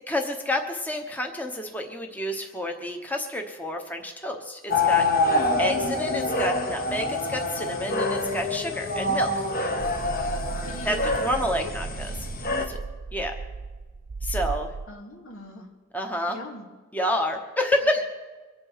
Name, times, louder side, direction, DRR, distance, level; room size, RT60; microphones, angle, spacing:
voice 1, 0.1-5.1 5.6-9.3 10.8-12.3 12.7-12.8 13.1-13.3 14.2-14.7 15.9-16.4 16.9-18.0, left 1 dB, 10° left, 3 dB, 1.0 m, -29 dB
sound 1, 4.7-12.7, left 2 dB, 40° left, 1.3 m, -26 dB
voice 2, 5.6-6.2 10.7-11.7 14.9-15.7 16.3-16.6, left 2 dB, 85° left, 1 dB, 2.7 m, -41 dB
sound 2, 9.8-14.9, right 4 dB, 40° right, 0.4 m, -35 dB
24.0 x 8.9 x 5.7 m, 1.3 s
head